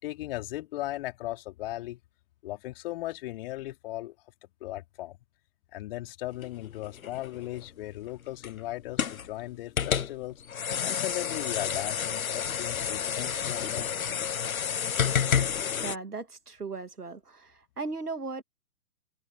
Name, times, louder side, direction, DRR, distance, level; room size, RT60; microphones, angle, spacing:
voice 1, 0.0-2.0 2.4-4.1 4.6-5.2 5.7-10.3 10.8-14.5, left 16 dB, 40° left, 4.3 m, -37 dB
sound 1, 6.4-16.0, left 7 dB, 65° left, 1.5 m, -30 dB
voice 2, 15.8-18.4, right 4 dB, 80° right, 2.7 m, -37 dB
figure-of-eight pair, 125°, 45 cm